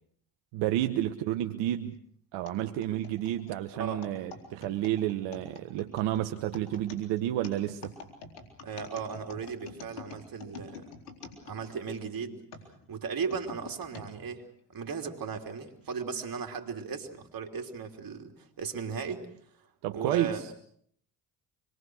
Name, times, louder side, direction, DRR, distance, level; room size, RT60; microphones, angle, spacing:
voice 1, 0.5-2.0 2.3-7.9 19.8-20.5, right 13 dB, 75° right, 8 dB, 1.2 m, -30 dB
sound 1, 2.5-12.0 12.5-14.1 14.7-14.8 15.7-15.9, left 4 dB, 85° left, 4.0 m, -47 dB
voice 2, 8.6-10.8 11.5-12.4 12.9-14.4 14.7-19.3 19.9-20.4, right 6 dB, 50° right, 4 dB, 3.6 m, -36 dB
26.0 x 22.0 x 6.4 m, 0.64 s
hypercardioid pair, 55°, 44 cm